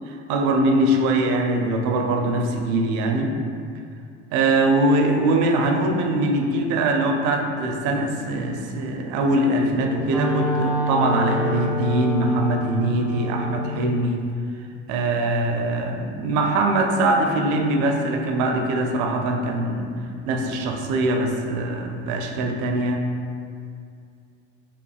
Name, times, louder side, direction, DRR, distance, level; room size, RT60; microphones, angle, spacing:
voice 1, 0.1-3.4 4.3-14.2 14.9-19.9 20.3-23.0, right 2 dB, 55° right, 3 dB, 0.6 m, -22 dB
Wind instrument woodwind instrument, 9.6-13.8, left 1 dB, 5° right, 0.3 m, -27 dB
5.3 x 2.4 x 2.3 m, 2.4 s
hypercardioid pair, 80°, 36 cm